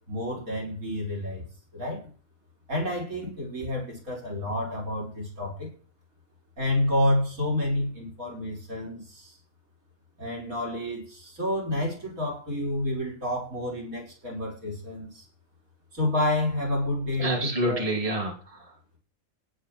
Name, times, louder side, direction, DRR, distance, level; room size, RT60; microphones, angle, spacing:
voice 1, 0.1-1.4 1.7-2.0 2.7-5.7 6.6-9.4 10.2-15.3 15.9-17.8, left 1 dB, 90° right, 1 dB, 5.8 m, -29 dB
voice 2, 17.2-19.0, right 1 dB, 25° right, 1 dB, 2.9 m, -29 dB
17.5 x 7.6 x 4.6 m, 0.40 s
omnidirectional pair, 1.4 m